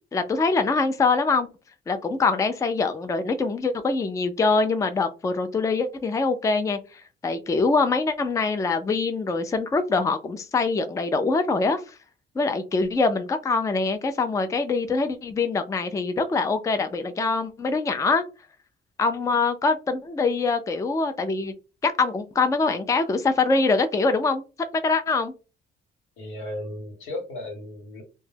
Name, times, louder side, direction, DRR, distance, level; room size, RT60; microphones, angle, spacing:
voice 1, 0.1-1.5 1.9-12.0 12.4-18.2 19.0-21.5 21.8-24.4 24.7-25.3, left 3 dB, 15° left, 9 dB, 0.3 m, -24 dB
voice 2, 26.2-28.0, left 1 dB, 90° left, 2 dB, 1.1 m, -35 dB
2.2 x 2.0 x 3.2 m, 0.31 s
cardioid pair, 90°, 20 cm